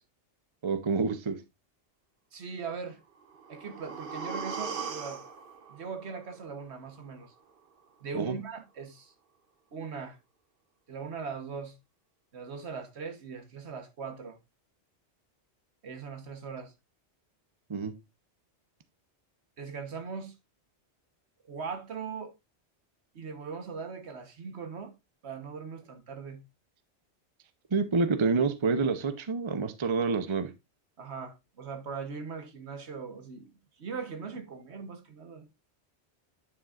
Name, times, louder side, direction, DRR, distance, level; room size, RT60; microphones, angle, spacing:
voice 1, 0.6-1.4 8.1-8.3 17.7-17.9 27.7-30.5, right 4 dB, 30° right, 0.7 m, -27 dB
voice 2, 2.3-3.0 3.5-5.2 5.7-7.3 8.0-9.1 9.7-10.2 10.9-11.7 12.3-14.4 15.8-16.7 19.6-20.3 21.4-22.3 23.1-24.9 25.2-26.4 31.0-35.5, right 5 dB, 70° right, 1.4 m, -40 dB
sound 1, 3.2-7.2 7.5-7.6, right 5 dB, 50° right, 1.0 m, -40 dB
9.9 x 6.0 x 2.5 m
omnidirectional pair, 1.2 m